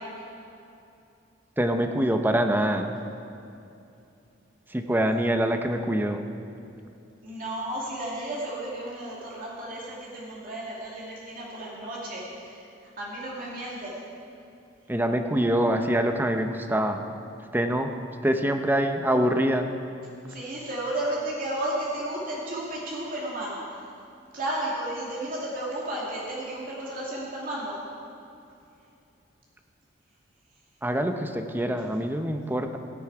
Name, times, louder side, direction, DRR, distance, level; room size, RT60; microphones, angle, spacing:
voice 1, 1.6-2.9 4.7-6.2 14.9-17.0 17.5-17.9 18.2-19.7 30.8-32.8, right 1 dB, 10° right, 6 dB, 0.7 m, -25 dB
voice 2, 7.2-12.6 13.0-14.0 20.3-23.6 24.3-27.8, right 1 dB, 50° right, -5 dB, 2.4 m, -33 dB
16.5 x 10.5 x 4.7 m, 2.7 s
head